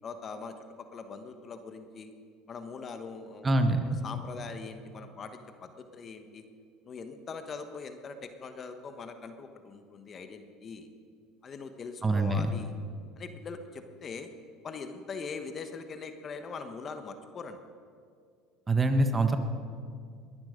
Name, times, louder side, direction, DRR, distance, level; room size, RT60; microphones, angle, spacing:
voice 1, 0.0-2.1 2.5-3.5 3.8-6.4 6.9-10.9 11.4-12.7 13.2-14.3 14.6-17.6, left 4 dB, 35° left, 8 dB, 1.3 m, -42 dB
voice 2, 3.4-4.0 12.0-12.5 18.7-19.4, right 2 dB, 20° right, 7 dB, 1.3 m, -25 dB
21.0 x 10.5 x 5.2 m, 2.2 s
supercardioid pair, 100°, 0 cm